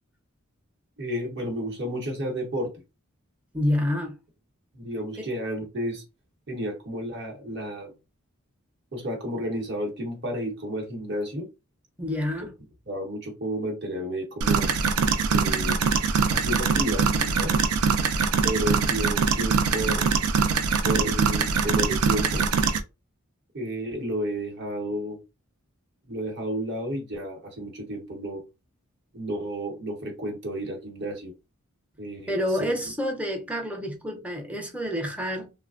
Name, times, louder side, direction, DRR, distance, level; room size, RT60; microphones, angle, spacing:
voice 1, 1.0-2.7 4.7-6.0 6.5-7.9 8.9-11.5 12.9-14.7 15.3-15.8 16.3-17.5 18.4-20.1 20.8-22.5 23.5-25.2 26.1-28.4 29.1-31.3 32.0-32.7, equal, 50° right, 0.9 m, -31 dB
voice 2, 3.5-4.2 12.0-12.6 32.3-35.5, left 1 dB, 5° right, 0.5 m, -28 dB
sound 1, 14.4-22.8, right 5 dB, 90° right, 0.4 m, -23 dB
3.2 x 2.1 x 2.4 m
head